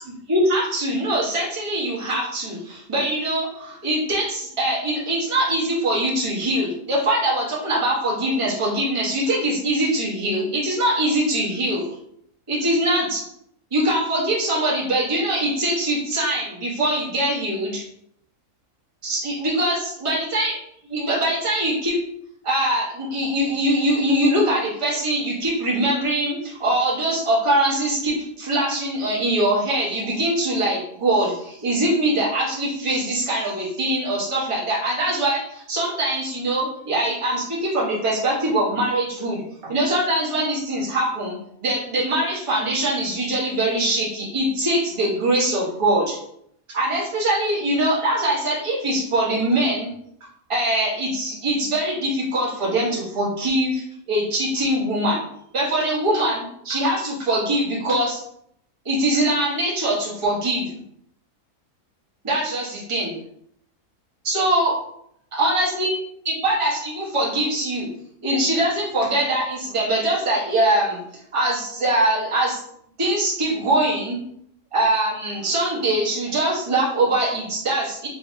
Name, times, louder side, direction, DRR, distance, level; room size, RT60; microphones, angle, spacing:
voice 1, 0.3-11.9 12.5-13.2 13.7-17.8 19.0-20.5 20.9-22.0 22.4-46.2 46.7-49.9 50.5-55.2 55.5-58.2 58.8-60.7 62.2-63.2 64.2-64.8 65.3-65.9 66.2-67.9 68.2-71.0 71.3-72.6 73.0-74.2 74.7-78.1, right 1 dB, 20° right, -6 dB, 1.2 m, -22 dB
3.9 x 3.6 x 2.8 m, 0.70 s
omnidirectional pair, 1.6 m